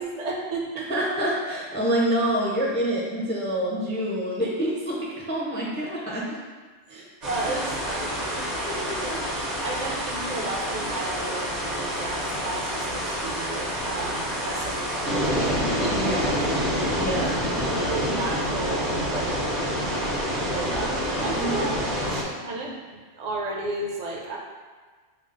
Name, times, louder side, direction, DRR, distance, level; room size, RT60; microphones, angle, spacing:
voice 1, 0.0-0.9 6.9-8.4 9.0-9.1 9.6-15.5 15.8-16.1 17.1-17.3 17.8-19.4 20.4-24.4, right 2 dB, 45° right, -1 dB, 0.6 m, -33 dB
voice 2, 0.8-6.3 6.9-7.1 8.6-9.2 15.9-16.3 17.0-17.4 21.3-21.7, right 1 dB, 15° left, -5 dB, 0.4 m, -27 dB
sound 1, 7.2-22.2, equal, 70° right, 1.2 m, -27 dB
5.4 x 2.0 x 3.8 m, 1.5 s
omnidirectional pair, 1.3 m